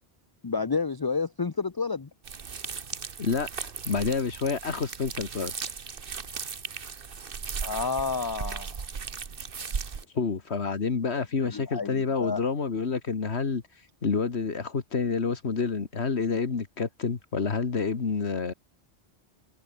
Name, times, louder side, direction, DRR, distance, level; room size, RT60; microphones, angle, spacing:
voice 1, 0.4-2.1 7.6-8.7 11.5-12.4, left 4 dB, 25° left, 0.5 m, -30 dB
sound 1, 2.2-10.0, right 6 dB, 55° right, 1.4 m, -37 dB
voice 2, 3.2-5.5 10.1-13.6 14.0-18.5, left 5 dB, 75° left, 2.0 m, -28 dB
omnidirectional pair, 1.1 m